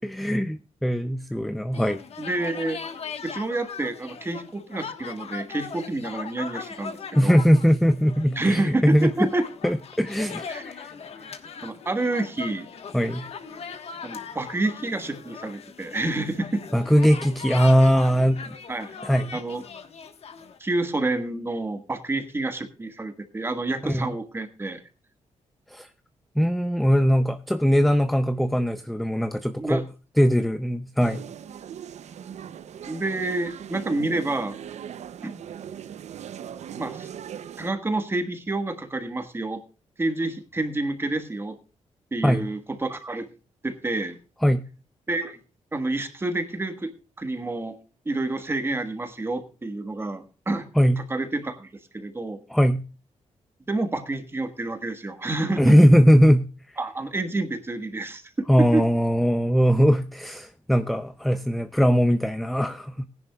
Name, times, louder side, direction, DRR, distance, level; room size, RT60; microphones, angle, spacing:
voice 1, 0.2-2.0 7.2-9.3 9.6-10.9 12.9-13.3 16.7-18.5 19.0-19.4 23.8-24.1 25.7-25.9 26.4-29.8 30.2-31.3 42.2-42.5 44.4-44.6 50.8-51.0 52.5-52.8 55.6-56.5 58.5-63.1, equal, ahead, 10 dB, 0.5 m, -20 dB
sound 1, 1.7-20.6, left 6 dB, 60° left, 1.3 m, -39 dB
voice 2, 2.2-2.8 3.2-7.4 8.3-9.4 10.5-10.6 11.6-12.7 14.0-16.6 18.7-19.0 19.3-19.6 20.6-24.8 29.6-29.8 32.8-34.6 35.2-35.3 36.8-37.1 37.6-39.6 40.0-41.6 42.1-43.3 43.6-44.2 45.1-45.4 45.7-46.9 47.2-47.8 48.0-50.7 51.0-52.4 53.7-55.8 56.8-58.8, right 2 dB, 20° right, 8 dB, 1.4 m, -28 dB
sound 2, 31.0-37.7, right 9 dB, 70° right, 0.6 m, -39 dB
19.0 x 10.5 x 2.3 m, 0.35 s
wide cardioid pair, 140°, 12 cm